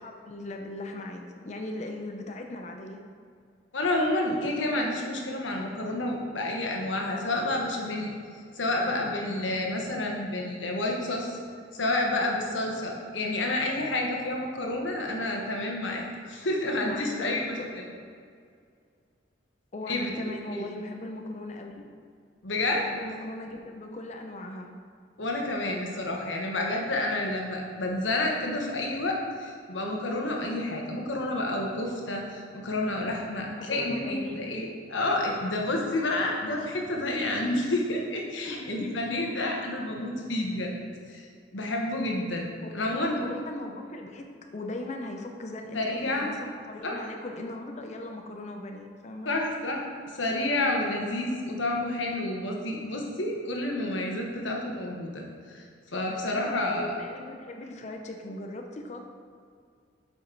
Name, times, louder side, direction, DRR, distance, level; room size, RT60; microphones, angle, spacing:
voice 1, 0.0-3.0 16.8-17.7 19.7-21.9 22.7-24.7 33.6-34.4 37.5-37.7 38.4-39.1 42.6-44.3 44.5-49.3 54.3-54.4 55.9-59.0, left 2 dB, 40° left, 3 dB, 0.5 m, -39 dB
voice 2, 3.7-8.1 8.5-11.4 11.7-17.6 19.9-20.7 22.4-22.8 25.2-40.7 41.1-42.5 42.7-43.2 45.7-46.3 46.8-47.0 49.3-49.8 50.1-55.6 55.9-56.9, left 2 dB, 90° left, 0 dB, 1.2 m, -29 dB
7.5 x 5.2 x 3.9 m, 2.2 s
head